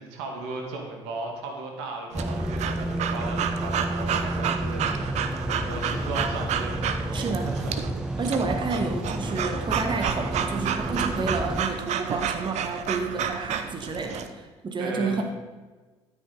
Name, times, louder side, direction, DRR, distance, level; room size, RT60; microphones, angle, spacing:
voice 1, 0.0-8.2 14.8-15.2, right 3 dB, 70° right, 2 dB, 1.8 m, -36 dB
sound 1, 2.1-11.7, right 1 dB, 5° right, 0.8 m, -31 dB
Breathing / Dog, 2.1-14.3, right 8 dB, 55° right, 0.8 m, -31 dB
voice 2, 7.1-7.5 8.2-15.2, right 3 dB, 35° right, 4 dB, 1.6 m, -30 dB
12.5 x 8.6 x 4.0 m, 1.3 s
figure-of-eight pair, 50°, 14 cm